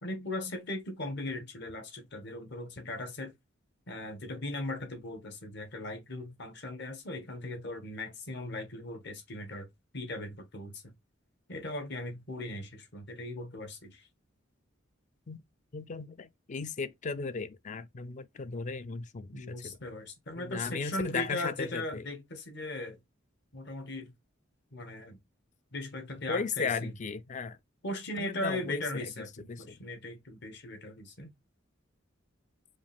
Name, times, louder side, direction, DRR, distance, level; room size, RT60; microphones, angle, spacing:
voice 1, 0.0-3.3 3.9-9.7 9.9-10.8 11.5-14.1 19.3-23.0 23.5-24.1 24.7-25.2 25.7-26.9 27.8-31.3, left 1 dB, 60° left, 1.5 m, -38 dB
voice 2, 15.7-19.8 20.4-22.0 26.3-27.6 28.2-29.8, left 4 dB, 40° left, 0.4 m, -36 dB
5.0 x 2.5 x 3.4 m
head